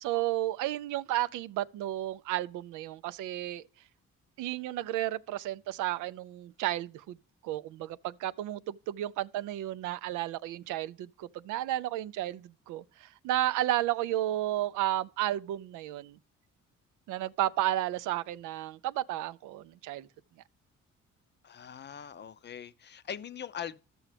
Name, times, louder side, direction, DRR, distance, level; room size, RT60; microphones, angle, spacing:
voice 1, 0.0-3.6 4.4-7.2 7.4-16.2 17.1-20.1, right 14 dB, 90° right, 0.5 m, -32 dB
voice 2, 21.4-23.8, left 8 dB, 35° left, 0.5 m, -41 dB
13.5 x 6.2 x 3.3 m
cardioid pair, 90°, 30 cm